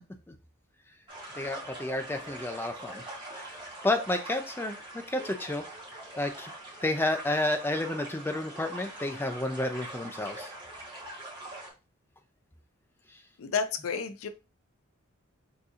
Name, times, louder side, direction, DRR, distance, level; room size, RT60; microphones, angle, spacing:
sound 1, 1.1-11.7, right 1 dB, 25° right, 1.2 m, -43 dB
voice 1, 1.3-3.0 3.3-4.8 5.1-5.6 6.1-6.5 6.8-10.5, left 1 dB, 10° left, 7 dB, 0.3 m, -31 dB
voice 2, 13.4-14.3, left 5 dB, 75° left, 9 dB, 0.4 m, -31 dB
4.0 x 2.6 x 2.4 m, 0.29 s
head